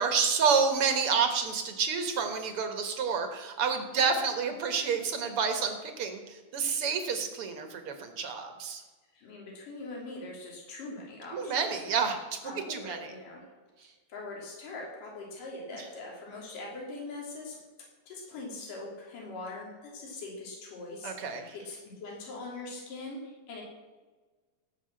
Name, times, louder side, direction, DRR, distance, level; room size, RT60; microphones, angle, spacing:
voice 1, 0.0-8.8 11.3-12.4 12.7-13.1 15.7-15.9 21.0-21.5, right 5 dB, 55° right, 6 dB, 1.9 m, -29 dB
voice 2, 9.1-11.6 12.4-13.4 13.8-17.6 18.1-23.6, left 2 dB, 75° left, -2 dB, 4.6 m, -42 dB
17.5 x 6.3 x 7.8 m, 1.3 s
omnidirectional pair, 3.8 m